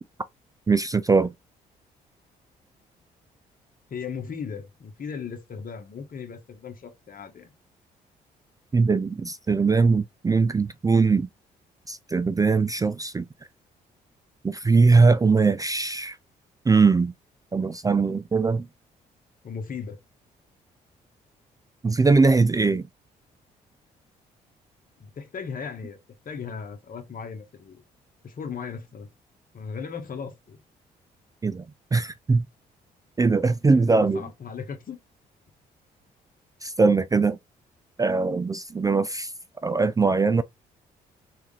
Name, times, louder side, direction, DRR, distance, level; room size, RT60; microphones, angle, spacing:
voice 1, 0.7-1.3 8.7-11.3 11.9-13.3 14.4-16.2 16.7-17.1 17.5-18.7 21.8-22.8 31.4-31.6 31.9-32.4 33.2-34.3 36.6-37.4 38.0-39.3 39.6-40.4, right 4 dB, 20° right, 0.4 m, -21 dB
voice 2, 3.9-7.5 19.4-20.0 25.0-26.0 26.2-27.8 28.2-29.1 29.5-30.6 33.8-35.0, left 6 dB, 50° left, 1.3 m, -37 dB
3.4 x 2.8 x 3.3 m
hypercardioid pair, 55°, 19 cm